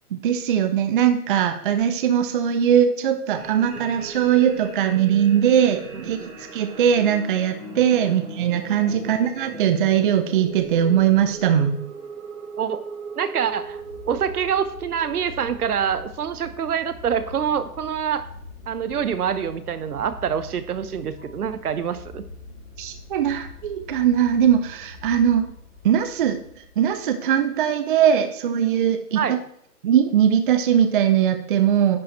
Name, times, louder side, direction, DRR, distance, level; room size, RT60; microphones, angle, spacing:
voice 1, 0.1-6.2 6.5-11.8 22.8-25.5 25.8-26.4 26.8-29.4 29.8-32.0, right 9 dB, 35° right, 9 dB, 0.6 m, -20 dB
sound 1, 3.4-16.1, right 3 dB, 55° right, 3.8 m, -39 dB
voice 2, 5.9-6.3 9.0-9.1 12.6-12.8 13.2-13.8 14.1-18.2 18.7-22.3 29.2-29.4, right 8 dB, 70° right, 12 dB, 1.1 m, -26 dB
sound 2, 13.3-27.5, left 3 dB, 55° left, 3.9 m, -43 dB
10.5 x 5.2 x 4.4 m, 0.70 s
hypercardioid pair, 140°, 46 cm